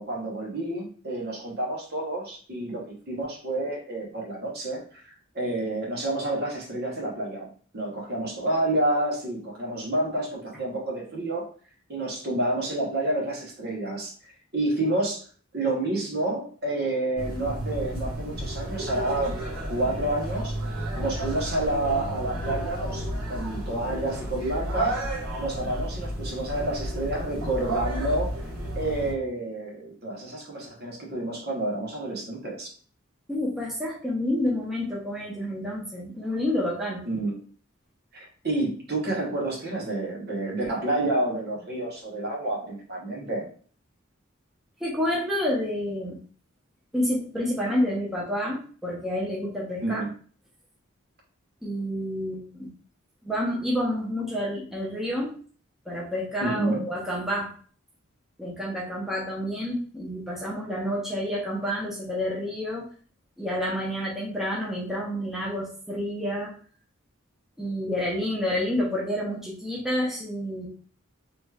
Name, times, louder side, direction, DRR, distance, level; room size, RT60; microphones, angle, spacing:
voice 1, 0.0-11.5 11.9-14.1 14.5-15.3 15.5-19.4 19.7-25.0 25.4-28.4 28.7-32.7 37.1-37.4 38.1-43.5 49.8-50.1 56.4-56.9, right 2 dB, 50° right, -1 dB, 0.9 m, -29 dB
sound 1, 17.2-29.1, right 1 dB, 80° right, 1.3 m, -32 dB
voice 2, 33.3-37.0 44.8-46.2 46.9-50.0 51.6-52.7 53.2-55.4 55.9-57.5 58.4-62.9 63.4-66.5 67.6-70.7, left 1 dB, ahead, -5 dB, 0.7 m, -29 dB
3.1 x 3.0 x 2.3 m, 0.43 s
head